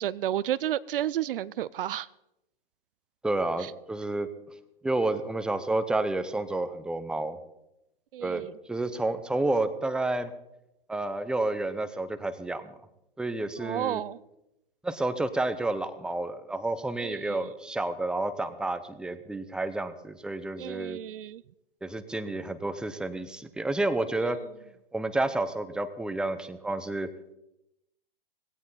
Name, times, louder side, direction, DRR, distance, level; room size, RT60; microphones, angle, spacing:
voice 1, 0.0-2.1 8.1-8.5 13.6-14.2 17.0-17.4 20.6-21.4, right 12 dB, 65° right, 19 dB, 0.5 m, -31 dB
voice 2, 3.2-4.3 4.8-7.4 8.2-10.3 10.9-12.7 13.2-14.0 14.8-21.0 21.8-24.4 24.9-27.1, right 2 dB, 5° right, 11 dB, 0.8 m, -30 dB
17.5 x 16.5 x 4.1 m, 0.86 s
hypercardioid pair, 115°, 30 cm